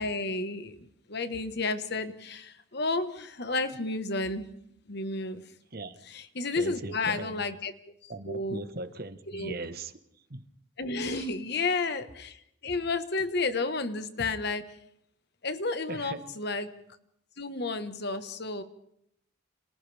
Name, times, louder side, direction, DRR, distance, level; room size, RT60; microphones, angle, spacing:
voice 1, 0.0-4.5 4.9-5.4 6.1-7.7 8.0-8.6 9.3-9.5 10.8-14.7 15.4-16.7 17.4-18.6, left 3 dB, 55° left, 1.4 m, -32 dB
voice 2, 6.6-7.4 8.1-10.0 10.3-10.5 11.1-11.3 15.9-16.3, right 2 dB, 50° right, 1.3 m, -39 dB
30.0 x 27.5 x 3.5 m
head